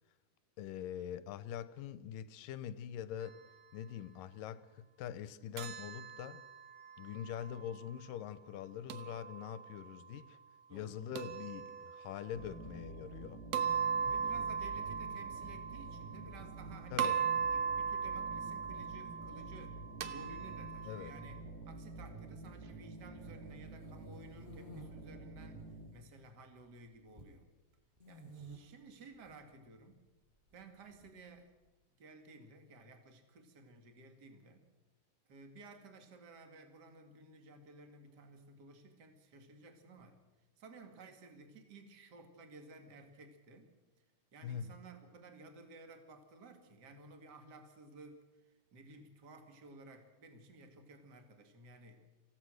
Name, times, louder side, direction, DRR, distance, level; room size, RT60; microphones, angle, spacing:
voice 1, 0.6-3.4 3.7-6.4 7.0-10.4 10.7-13.4 14.1-14.2 16.9-17.2 20.9-21.1 44.4-44.8, left 9 dB, 75° left, 2.3 m, -44 dB
sound 1, 5.6-7.7 8.9-9.9 11.2-12.4 13.5-16.6 17.0-21.4, right 7 dB, 65° right, 1.6 m, -38 dB
voice 2, 12.3-12.7 14.1-21.4 21.6-27.5 28.1-30.0 30.5-31.5 32.0-34.7 35.3-40.2 40.6-43.7 44.3-52.0, right 3 dB, 35° right, 2.2 m, -55 dB
sound 2, 12.3-25.9, right 3 dB, 85° right, 4.3 m, -49 dB
sound 3, 23.4-24.8 25.5-26.1 26.4-27.4 28.0-28.6 29.1-29.4 30.5-31.4, right 1 dB, 15° right, 5.7 m, -53 dB
26.0 x 15.5 x 6.4 m
omnidirectional pair, 4.2 m